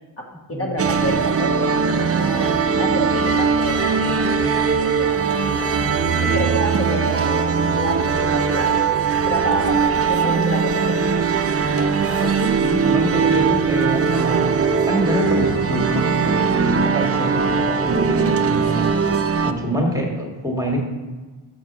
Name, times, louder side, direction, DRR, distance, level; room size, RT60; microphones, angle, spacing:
voice 1, 0.2-5.7 6.2-8.8 9.2-11.0 19.5-19.8, equal, 30° left, -2 dB, 1.3 m, -29 dB
sound 1, 0.8-19.5, right 5 dB, 35° right, 0.5 m, -20 dB
voice 2, 12.2-20.8, equal, 10° right, 0 dB, 1.7 m, -26 dB
6.2 x 4.7 x 6.0 m, 1.3 s
cardioid pair, 70°, 45 cm